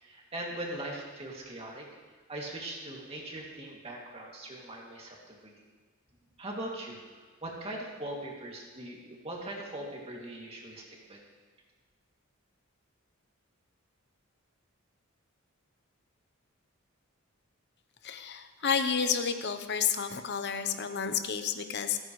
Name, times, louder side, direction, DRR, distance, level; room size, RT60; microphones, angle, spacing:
voice 1, 0.0-1.9 2.3-5.6 6.4-11.2, right 1 dB, 30° right, -2 dB, 2.5 m, -40 dB
voice 2, 18.0-22.0, left 6 dB, 50° left, 8 dB, 0.9 m, -30 dB
27.5 x 9.2 x 3.2 m, 1.4 s
head